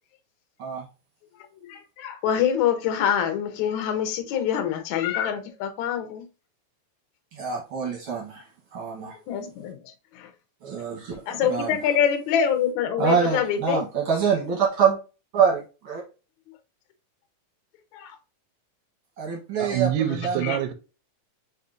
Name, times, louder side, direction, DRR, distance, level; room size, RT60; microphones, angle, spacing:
voice 1, 1.7-6.3 9.0-9.8 10.1-10.3 11.3-13.8 17.9-18.2, left 8 dB, 70° left, 1.9 m, -25 dB
voice 2, 7.3-8.4 8.7-9.2 10.6-11.8 13.0-15.0 15.3-16.0 19.2-19.9 20.2-20.5, right 6 dB, 65° right, 1.3 m, -25 dB
voice 3, 19.6-20.7, right 11 dB, 85° right, 2.1 m, -26 dB
6.1 x 2.7 x 2.5 m
omnidirectional pair, 3.7 m